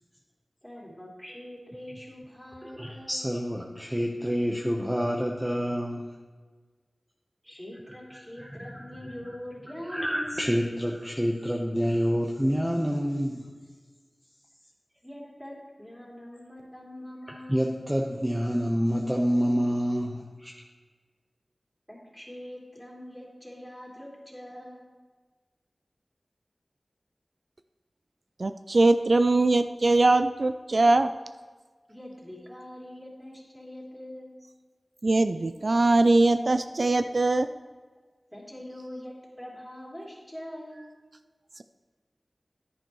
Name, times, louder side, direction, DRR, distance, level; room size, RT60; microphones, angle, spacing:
voice 1, 0.6-3.4 7.5-10.6 15.0-17.7 21.9-24.8 31.9-34.3 38.3-40.8, left 1 dB, 5° left, -4 dB, 3.1 m, -43 dB
voice 2, 2.6-6.1 8.1-9.3 9.9-13.5 17.3-20.5, equal, 10° right, -1 dB, 0.9 m, -28 dB
voice 3, 28.4-31.1 35.0-37.5, right 2 dB, 60° right, 10 dB, 0.3 m, -21 dB
10.5 x 9.6 x 3.1 m, 1.4 s
wide cardioid pair, 50°, 0 cm